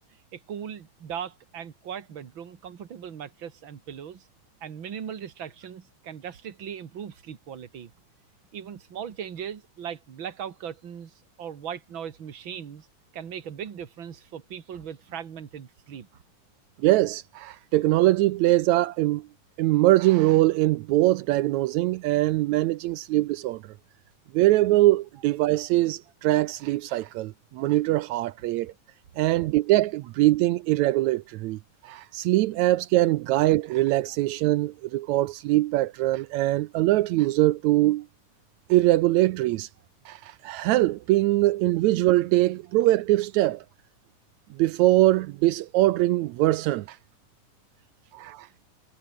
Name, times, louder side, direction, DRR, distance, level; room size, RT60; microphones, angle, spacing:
voice 1, 0.3-4.3 4.6-7.9 8.5-12.9 13.1-16.2, right 8 dB, 45° right, 2.3 m, -38 dB
voice 2, 16.8-19.3 19.6-23.6 24.3-28.7 29.2-38.1 38.7-39.7 40.1-43.6 44.5-47.0 48.1-48.5, right 17 dB, 80° right, 1.7 m, -22 dB
omnidirectional pair, 3.7 m